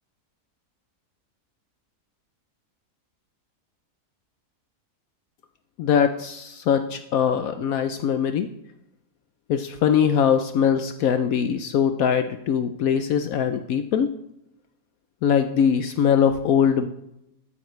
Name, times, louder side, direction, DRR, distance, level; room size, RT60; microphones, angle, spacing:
voice 1, 5.8-8.5 9.5-14.1 15.2-16.9, left 8 dB, 70° left, 8 dB, 1.0 m, -22 dB
12.5 x 9.4 x 3.2 m, 0.83 s
omnidirectional pair, 1.6 m